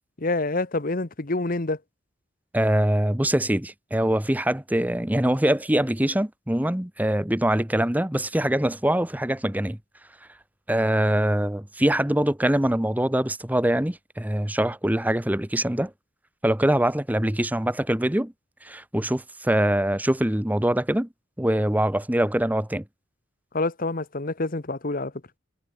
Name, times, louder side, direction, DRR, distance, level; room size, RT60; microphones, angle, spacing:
voice 1, 0.2-1.8 23.5-25.1, left 2 dB, 45° left, 1.2 m, -27 dB
voice 2, 2.5-9.8 10.7-15.9 16.4-18.3 18.6-21.1 21.4-22.8, right 1 dB, 10° right, 0.9 m, -23 dB
head